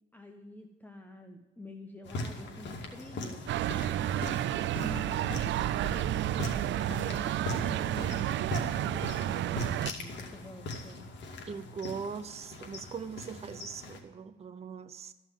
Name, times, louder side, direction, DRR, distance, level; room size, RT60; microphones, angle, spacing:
voice 1, 0.1-3.4 4.8-5.6 5.9-8.3 8.8-11.0, left 1 dB, 10° left, 4 dB, 1.1 m, -47 dB
sound 1, 2.0-14.0, left 2 dB, 65° left, 2.4 m, -40 dB
sound 2, 3.5-9.9, right 13 dB, 70° right, 0.4 m, -31 dB
voice 2, 11.5-15.1, right 6 dB, 30° right, 10 dB, 0.7 m, -40 dB
13.5 x 5.6 x 9.1 m, 1.1 s
cardioid pair, 90°, 20 cm